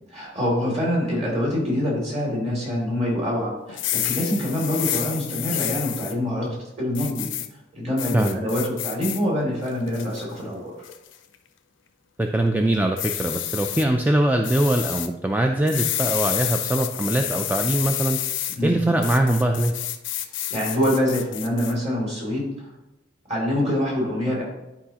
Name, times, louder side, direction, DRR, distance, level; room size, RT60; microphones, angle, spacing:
voice 1, 0.1-7.3 7.7-10.7 18.6-18.8 20.5-22.7 23.3-24.4, left 1 dB, 35° right, -3 dB, 2.7 m, -25 dB
sound 1, 3.7-6.1 6.9-7.5 8.0-9.2 9.7-10.2 10.8-11.1 13.0-13.8 14.4-15.1 15.7-18.6 19.0-21.7, left 12 dB, 75° left, 0.5 m, -29 dB
voice 2, 12.2-18.2 18.6-19.7, right 1 dB, 10° right, 4 dB, 0.3 m, -22 dB
10.5 x 4.8 x 2.9 m, 0.96 s
head